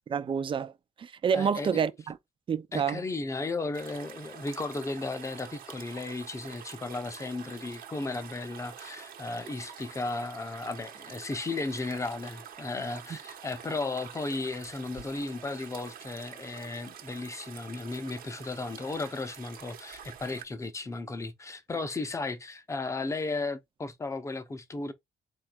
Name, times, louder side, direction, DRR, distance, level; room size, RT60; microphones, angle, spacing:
voice 1, 0.1-0.7 1.0-2.2 2.5-3.0, right 7 dB, 35° right, 0.5 m, -28 dB
voice 2, 1.3-1.8 2.7-24.9, left 3 dB, 20° left, 0.7 m, -35 dB
slow water, 3.7-20.4, right 8 dB, 70° right, 1.1 m, -47 dB
4.3 x 2.4 x 4.4 m
cardioid pair, 150°, 15 cm